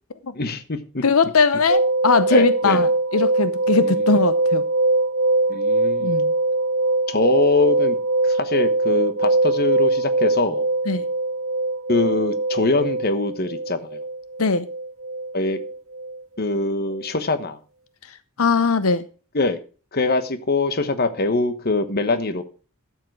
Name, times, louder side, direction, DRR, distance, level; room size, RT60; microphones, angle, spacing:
voice 1, 0.3-1.0 2.3-2.8 3.8-4.1 5.5-6.2 7.1-8.0 8.2-10.7 11.9-14.0 15.3-15.6 16.4-17.6 19.3-19.6 19.9-22.4, left 3 dB, 45° left, 11 dB, 1.1 m, -23 dB
voice 2, 1.0-4.6 6.0-6.3 10.9-11.1 14.4-14.7 18.1-19.1, left 4 dB, 85° left, 13 dB, 0.8 m, -20 dB
sound 1, 1.7-16.6 16.9-17.0, right 2 dB, 75° right, 1.0 m, -22 dB
12.0 x 7.4 x 4.6 m, 0.37 s
head